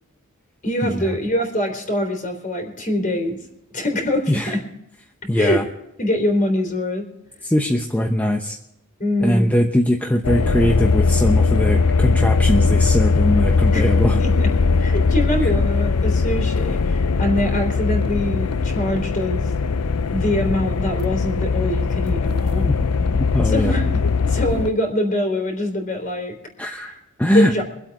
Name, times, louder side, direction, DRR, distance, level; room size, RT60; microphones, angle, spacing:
voice 1, 0.6-3.4 3.7-4.6 5.4-5.6 6.0-7.0 9.0-9.5 13.7-13.9 14.2-14.5 14.8-19.4 20.1-22.7 23.4-26.3 26.6-27.0 27.3-27.6, left 1 dB, 40° left, 3 dB, 3.9 m, -24 dB
voice 2, 5.3-5.6 7.4-8.6 9.2-14.2 15.4-15.5 22.6-22.7 23.0-23.7 26.6-26.9 27.2-27.5, equal, 5° left, 2 dB, 0.9 m, -21 dB
sound 1, 10.2-24.7, left 4 dB, 90° left, 0.6 m, -19 dB
24.5 x 8.2 x 4.8 m, 0.83 s
head